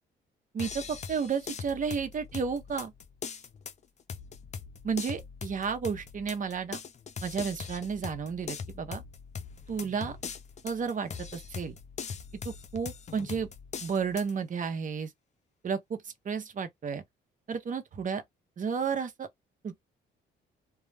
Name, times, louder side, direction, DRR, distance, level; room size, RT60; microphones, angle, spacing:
voice 1, 0.5-2.9 4.8-6.8 7.2-9.0 9.7-10.2 10.6-11.7 12.4-13.5 13.8-15.1 15.6-17.0 17.5-18.2 18.6-19.3 19.6-19.8, right 6 dB, 40° right, 0.7 m, -32 dB
sound 1, 0.6-14.3, left 6 dB, 35° left, 0.4 m, -41 dB
2.2 x 2.0 x 3.2 m
cardioid pair, 90°, 20 cm